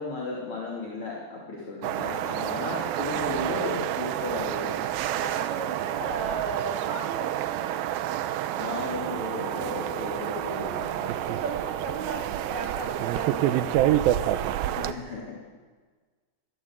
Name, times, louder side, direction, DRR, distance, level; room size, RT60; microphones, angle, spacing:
voice 1, 0.0-4.7 8.6-11.2 14.7-15.4, left 3 dB, 35° left, -3 dB, 3.4 m, -35 dB
sound 1, 1.8-14.9, right 12 dB, 80° right, 2.2 m, -28 dB
voice 2, 5.1-7.8 9.5-9.9 11.1-14.8, right 4 dB, 55° right, 1 dB, 3.9 m, -36 dB
22.5 x 15.5 x 7.5 m, 1.5 s
omnidirectional pair, 5.0 m